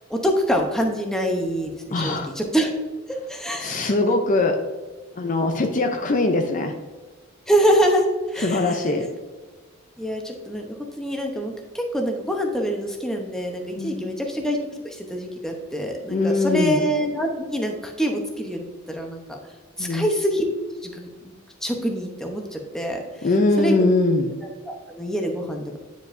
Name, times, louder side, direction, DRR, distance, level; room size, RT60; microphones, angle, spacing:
voice 1, 0.1-2.7 3.3-3.9 7.5-8.8 10.0-14.6 14.8-19.4 19.8-20.4 20.8-21.1 21.6-23.0 23.6-23.7 24.6-25.7, equal, ahead, 1 dB, 0.7 m, -25 dB
voice 2, 1.9-2.3 3.6-4.6 5.2-6.7 8.4-9.1 13.7-14.2 16.1-16.8 19.8-20.1 23.2-24.4, left 2 dB, 35° left, 4 dB, 0.5 m, -21 dB
9.4 x 5.1 x 2.6 m, 1.3 s
head